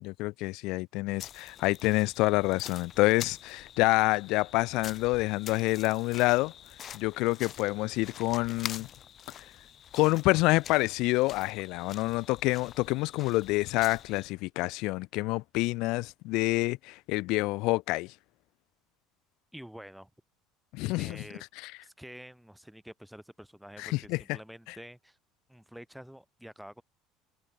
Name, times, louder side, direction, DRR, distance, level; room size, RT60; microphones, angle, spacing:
voice 1, 0.0-6.5 6.9-8.9 9.9-18.1 20.7-21.2 21.6-21.7 23.8-24.2, left 22 dB, 65° left, 0.9 m, -27 dB
sound 1, 1.2-14.3, left 9 dB, 35° left, 2.3 m, -46 dB
voice 2, 19.5-20.1 21.0-21.4 21.8-25.2 25.5-26.8, equal, ahead, 5.2 m, -48 dB
cardioid pair, 150°, 0 cm